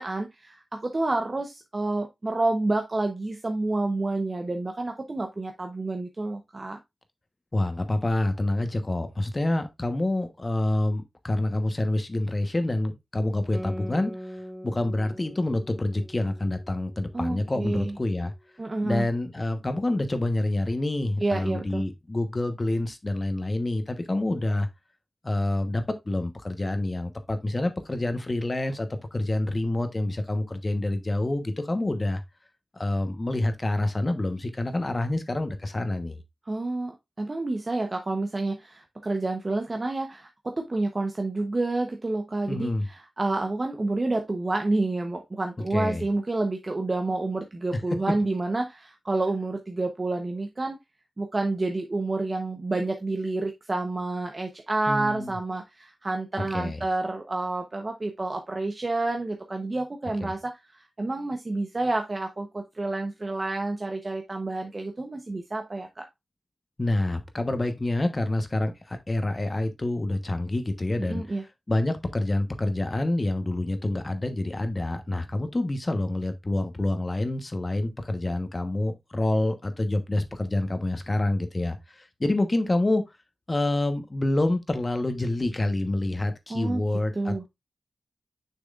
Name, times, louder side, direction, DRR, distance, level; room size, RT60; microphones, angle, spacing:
voice 1, 0.0-6.8 17.1-18.0 18.6-19.1 21.2-21.9 36.5-50.8 51.2-66.1 71.0-71.4 86.5-86.8 87.1-87.4, right 2 dB, 35° right, 0.9 m, -29 dB
voice 2, 7.5-14.1 14.6-18.3 18.8-24.7 25.2-32.2 32.7-36.2 42.5-42.9 45.6-46.1 54.9-55.3 56.4-56.8 60.2-60.3 66.8-71.4 71.7-83.0 83.5-87.5, left 2 dB, 30° left, 1.1 m, -27 dB
Guitar, 13.5-18.5, equal, 5° left, 0.9 m, -42 dB
6.7 x 6.2 x 2.4 m
wide cardioid pair, 75°, 0 cm